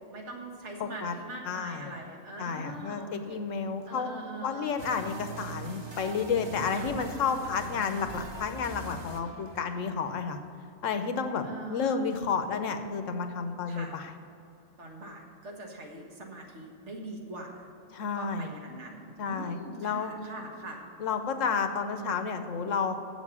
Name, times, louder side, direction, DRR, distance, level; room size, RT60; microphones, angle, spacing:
voice 1, 0.0-3.4 3.9-5.2 6.7-7.0 11.4-12.0 13.7-14.0 14.8-17.7 18.1-20.8, right 2 dB, 65° right, 0 dB, 1.9 m, -43 dB
voice 2, 0.8-1.1 1.5-1.9 2.4-4.1 4.4-10.4 10.8-14.1 17.9-18.5 19.2-20.1 21.0-23.0, left 5 dB, 80° left, 8 dB, 1.1 m, -31 dB
sound 1, 4.8-10.0, right 3 dB, 25° right, 0.6 m, -42 dB
7.8 x 7.3 x 8.3 m, 2.7 s
omnidirectional pair, 1.3 m